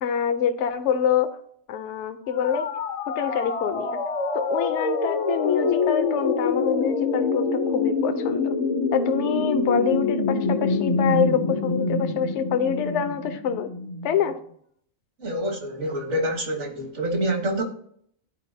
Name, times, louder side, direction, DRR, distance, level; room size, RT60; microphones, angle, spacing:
voice 1, 0.0-1.4 1.7-2.7 3.1-4.0 4.3-8.6 8.9-13.7 14.0-14.4, left 8 dB, 70° left, 8 dB, 0.8 m, -26 dB
sound 1, 2.3-14.1, left 3 dB, 45° left, 0.4 m, -25 dB
voice 2, 15.2-17.6, right 1 dB, 65° right, 4 dB, 1.5 m, -27 dB
11.0 x 4.4 x 2.7 m, 0.65 s
omnidirectional pair, 1.4 m